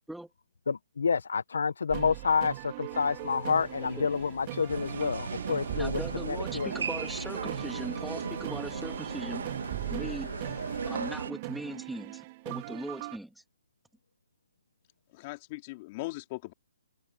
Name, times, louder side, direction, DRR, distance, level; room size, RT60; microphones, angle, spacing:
voice 1, 0.7-6.7, left 5 dB, 80° left, 1.0 m, -29 dB
sound 1, 1.9-13.2, right 20 dB, 35° right, 3.6 m, -40 dB
sound 2, 2.9-11.1, left 8 dB, 60° left, 2.0 m, -48 dB
sound 3, 4.7-11.3, right 6 dB, 75° right, 2.2 m, -37 dB
voice 2, 5.7-9.5 9.9-13.3, right 1 dB, ahead, 3.0 m, -40 dB
voice 3, 15.1-16.5, left 22 dB, 35° left, 3.2 m, -39 dB
open air
hypercardioid pair, 150°, 0 cm